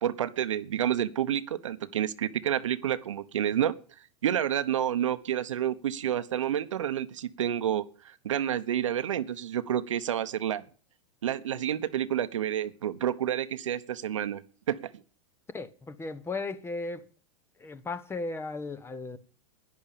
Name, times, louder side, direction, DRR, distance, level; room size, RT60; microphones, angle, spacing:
voice 1, 0.0-3.7 4.2-10.6 11.2-14.4 14.7-14.9, right 10 dB, 85° right, 1.0 m, -29 dB
voice 2, 15.5-17.1 17.6-19.2, left 3 dB, 15° left, 1.1 m, -36 dB
11.5 x 10.5 x 6.9 m
hypercardioid pair, 110°, 16 cm